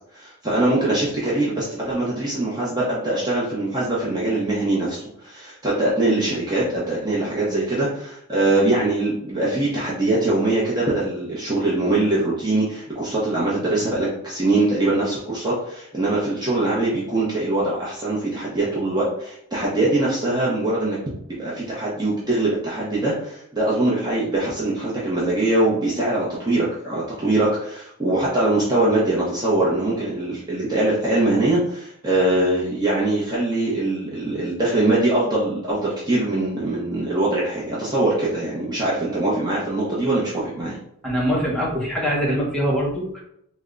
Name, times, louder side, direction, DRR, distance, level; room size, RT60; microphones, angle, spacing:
voice 1, 0.1-21.0 21.4-40.8, right 2 dB, 20° right, -7 dB, 0.6 m, -22 dB
voice 2, 41.0-43.2, equal, 5° left, -6 dB, 0.9 m, -23 dB
3.3 x 2.1 x 3.7 m, 0.74 s
head